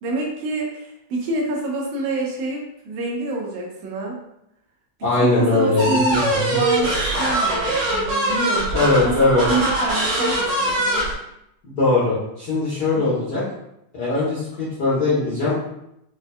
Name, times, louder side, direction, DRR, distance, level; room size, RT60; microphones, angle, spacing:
voice 1, 0.0-4.2 5.0-6.2 6.5-11.1 13.0-13.1, right 3 dB, 85° right, -2 dB, 2.2 m, -27 dB
voice 2, 5.0-6.6 8.7-9.5 11.8-13.4 13.9-15.5, left 2 dB, 75° left, -9 dB, 0.9 m, -20 dB
sound 1, 5.8-11.1, right 1 dB, 65° right, 1.7 m, -22 dB
5.4 x 2.7 x 2.2 m, 0.82 s
omnidirectional pair, 3.4 m